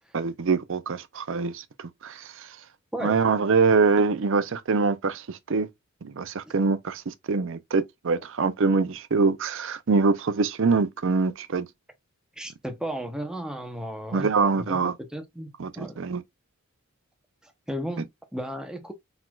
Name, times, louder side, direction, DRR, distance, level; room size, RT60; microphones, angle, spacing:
voice 1, 0.1-2.5 3.0-5.7 6.0-11.7 14.1-14.9 15.6-16.2, right 4 dB, 55° right, 0.5 m, -24 dB
voice 2, 12.4-16.0 17.4-18.9, equal, 5° right, 0.8 m, -35 dB
4.3 x 4.2 x 2.3 m
head